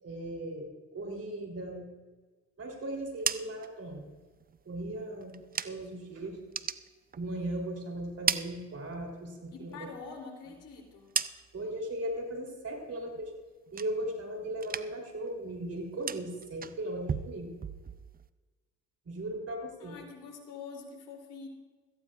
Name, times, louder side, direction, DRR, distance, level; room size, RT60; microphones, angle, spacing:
voice 1, 0.0-1.9 2.6-4.0 4.7-5.3 5.6-6.4 7.2-9.9 11.5-13.3 13.7-17.6 19.1-20.0, right 1 dB, 45° right, 1 dB, 3.5 m, -37 dB
sound 1, 2.9-6.0 6.4-7.7 8.0-9.3 9.6-11.8 12.2-12.6 13.0-14.3 14.5-15.2 15.4-18.3, right 7 dB, 25° right, 0.5 m, -38 dB
voice 2, 9.5-11.1 19.8-21.5, left 5 dB, 65° left, 0 dB, 3.2 m, -45 dB
17.5 x 14.0 x 2.5 m, 1.3 s
supercardioid pair, 60°, 33 cm